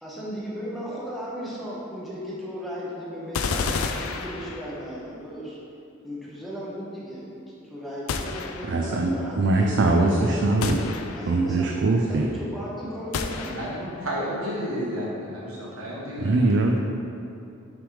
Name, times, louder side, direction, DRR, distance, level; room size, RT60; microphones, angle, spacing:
voice 1, 0.0-3.7 4.0-5.6 6.0-10.7 11.1-11.7 12.1-13.5, equal, ahead, -8 dB, 1.0 m, -36 dB
sound 1, 3.3-5.0 8.1-9.0 10.6-11.5 13.1-14.0, left 4 dB, 85° left, 0.4 m, -31 dB
voice 2, 8.7-10.8 11.3-12.3 16.2-16.8, right 2 dB, 55° right, 0 dB, 0.4 m, -22 dB
voice 3, 13.3-16.5, equal, 90° right, -5 dB, 1.4 m, -32 dB
6.1 x 3.4 x 4.9 m, 2.7 s
head